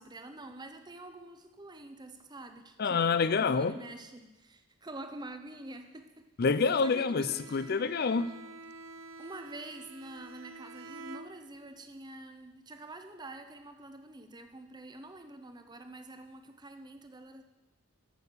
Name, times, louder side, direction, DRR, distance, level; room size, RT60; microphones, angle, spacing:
voice 1, 0.0-6.3 6.8-7.7 9.2-17.4, right 2 dB, 20° right, 7 dB, 0.7 m, -47 dB
voice 2, 2.8-3.7 6.4-8.3, left 5 dB, 50° left, 15 dB, 0.4 m, -27 dB
Bowed string instrument, 7.2-11.8, right 3 dB, 75° right, 0.6 m, -48 dB
8.9 x 7.0 x 6.6 m, 1.1 s
head